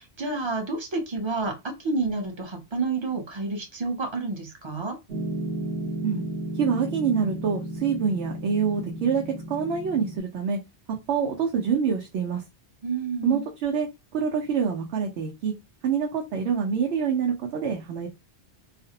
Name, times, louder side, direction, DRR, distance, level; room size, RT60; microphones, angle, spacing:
voice 1, 0.0-5.0 12.8-13.5, right 3 dB, 35° right, 0.6 m, -29 dB
Piano, 5.1-10.2, right 1 dB, 65° right, 1.0 m, -33 dB
voice 2, 6.6-9.2 9.5-10.6 11.1-12.4 13.2-13.9 14.1-15.5 15.8-18.1, right 6 dB, 85° right, 0.8 m, -26 dB
2.5 x 2.0 x 2.7 m
omnidirectional pair, 1.1 m